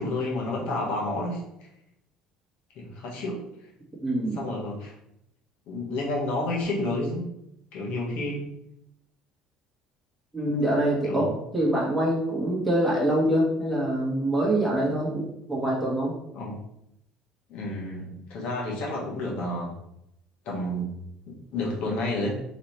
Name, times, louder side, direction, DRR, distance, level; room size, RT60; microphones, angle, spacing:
voice 1, 0.0-1.4 2.7-3.4 4.4-4.9 5.7-7.2 7.7-8.5 11.0-11.3 16.3-16.6 17.5-19.7 20.4-20.9 21.3-22.3, left 2 dB, 65° left, -3 dB, 1.2 m, -30 dB
voice 2, 4.0-4.4 10.3-11.2 11.5-16.2, right 1 dB, ahead, -6 dB, 1.4 m, -25 dB
3.2 x 3.0 x 4.1 m, 0.81 s
cardioid pair, 125°, 2 cm